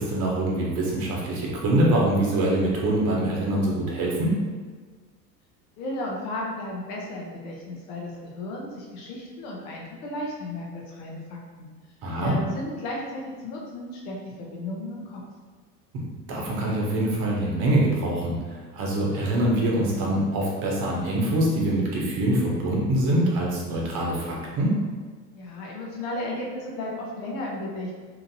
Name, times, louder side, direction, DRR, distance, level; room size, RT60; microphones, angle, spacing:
voice 1, 0.0-4.4 12.0-12.3 16.3-18.4 18.7-24.8, right 1 dB, 45° right, -3 dB, 0.9 m, -24 dB
voice 2, 5.8-11.7 12.2-15.2 25.3-27.9, left 1 dB, 60° left, -2 dB, 0.9 m, -34 dB
3.0 x 2.6 x 2.6 m, 1.4 s
hypercardioid pair, 85°, 48 cm